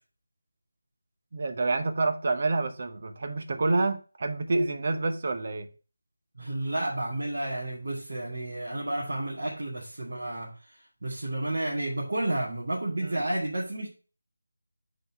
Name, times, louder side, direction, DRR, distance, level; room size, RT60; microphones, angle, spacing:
voice 1, 1.3-5.7 13.0-13.2, right 3 dB, 45° right, 0.9 m, -28 dB
voice 2, 6.4-10.5 11.0-13.9, right 1 dB, 65° right, 2.0 m, -31 dB
5.2 x 4.1 x 5.9 m
figure-of-eight pair, 165°, 0 cm